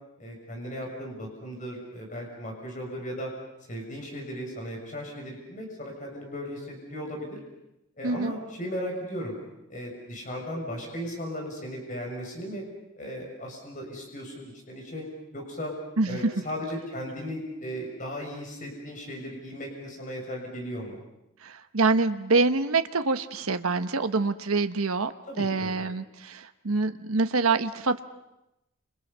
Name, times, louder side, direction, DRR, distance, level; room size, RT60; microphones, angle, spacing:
voice 1, 0.2-3.3 3.7-7.3 8.0-9.3 9.7-12.6 13.0-15.1 15.3-15.7 16.1-21.0 25.3-25.9, equal, 35° left, 1 dB, 6.6 m, -36 dB
voice 2, 16.0-16.3 21.4-25.1 25.4-28.0, right 3 dB, 85° right, 8 dB, 1.1 m, -25 dB
30.0 x 28.0 x 5.6 m, 0.88 s
head